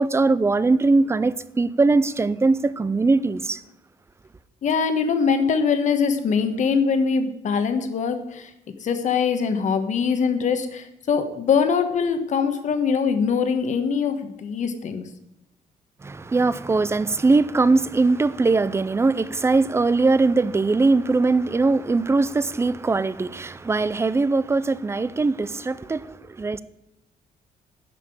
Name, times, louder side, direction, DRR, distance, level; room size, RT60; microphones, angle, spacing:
voice 1, 0.0-3.6 16.0-26.6, right 3 dB, 15° right, 0.5 m, -21 dB
voice 2, 4.6-8.5 8.8-15.1, left 6 dB, 55° left, 1.3 m, -22 dB
11.0 x 5.9 x 8.5 m
cardioid pair, 125°, 15 cm